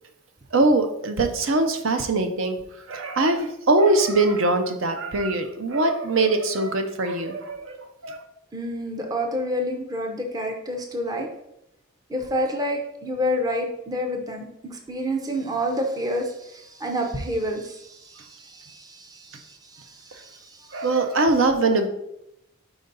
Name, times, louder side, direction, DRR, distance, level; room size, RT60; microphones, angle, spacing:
voice 1, 0.5-2.6 2.9-8.2 20.7-21.9, right 2 dB, 60° right, 6 dB, 0.6 m, -22 dB
voice 2, 8.5-11.3 12.1-20.9, equal, 15° right, 2 dB, 0.6 m, -29 dB
4.7 x 4.0 x 5.3 m, 0.83 s
head